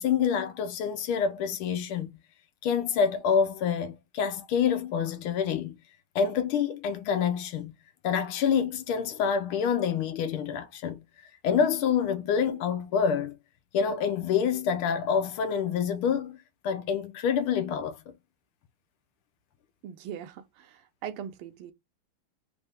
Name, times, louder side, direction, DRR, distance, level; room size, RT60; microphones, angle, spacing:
voice 1, 0.0-2.1 2.6-5.8 6.1-7.7 8.0-11.0 11.4-13.3 13.7-16.4 16.6-18.0, left 7 dB, 75° left, 1.6 m, -27 dB
voice 2, 19.8-21.7, right 9 dB, 80° right, 1.6 m, -40 dB
4.3 x 2.7 x 3.4 m
omnidirectional pair, 2.4 m